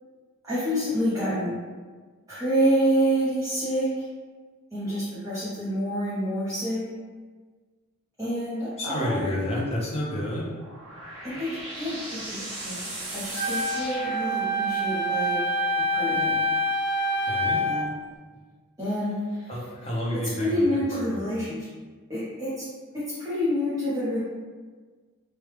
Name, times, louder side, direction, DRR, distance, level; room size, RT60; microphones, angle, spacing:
voice 1, 0.4-1.6 2.3-4.0 4.7-6.8 8.2-9.7 11.2-11.5 11.7-12.8 13.1-15.4 15.9-16.4 17.5-17.9 18.8-19.5 20.1-21.7 22.1-22.6 22.9-24.2, equal, 15° right, -13 dB, 0.7 m, -28 dB
voice 2, 8.8-10.5 17.3-17.6 19.5-20.6 20.9-21.2, equal, 30° left, -5 dB, 0.7 m, -30 dB
sound 1, 10.4-14.9, right 1 dB, 75° right, 0.9 m, -38 dB
Wind instrument woodwind instrument, 13.3-17.8, equal, 50° right, 1.2 m, -26 dB
3.1 x 2.3 x 3.2 m, 1.4 s
head